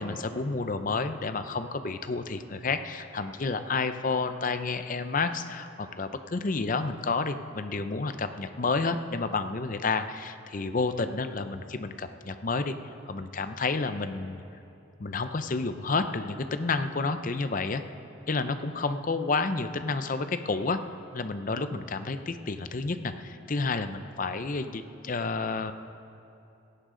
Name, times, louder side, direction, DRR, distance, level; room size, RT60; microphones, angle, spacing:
voice 1, 0.0-12.8 13.1-14.4 15.0-17.8 18.3-20.8 21.1-25.7, left 3 dB, 40° left, 10 dB, 0.6 m, -30 dB
17.0 x 15.0 x 3.8 m, 2.8 s
head